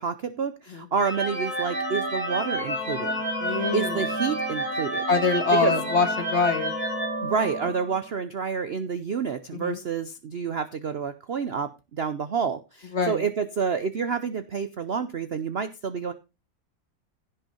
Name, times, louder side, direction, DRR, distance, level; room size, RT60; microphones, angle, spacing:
voice 1, 0.0-3.2 3.5-5.0 5.5-5.8 7.2-16.1, right 6 dB, 70° right, 11 dB, 0.6 m, -29 dB
sound 1, 1.0-8.0, right 1 dB, 5° left, 3.0 m, -29 dB
voice 2, 3.4-4.0 5.1-6.7 9.5-9.8 12.9-13.2, left 4 dB, 40° left, 7 dB, 1.6 m, -24 dB
16.0 x 5.5 x 4.3 m, 0.27 s
omnidirectional pair, 2.1 m